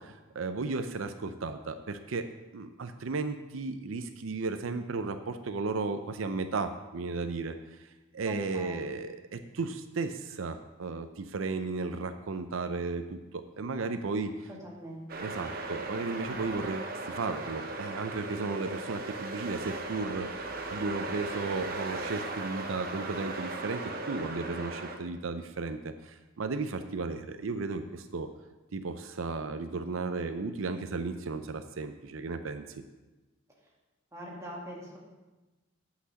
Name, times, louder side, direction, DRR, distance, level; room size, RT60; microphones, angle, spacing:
voice 1, 0.0-2.3 2.5-14.5 15.2-28.3 28.7-32.8, right 3 dB, 80° right, 8 dB, 0.6 m, -35 dB
voice 2, 8.2-8.9 14.6-15.3 34.1-35.0, right 1 dB, 15° right, -4 dB, 2.1 m, -43 dB
sound 1, 15.1-24.9, right 2 dB, 45° right, 1.0 m, -37 dB
8.5 x 6.0 x 7.5 m, 1.1 s
head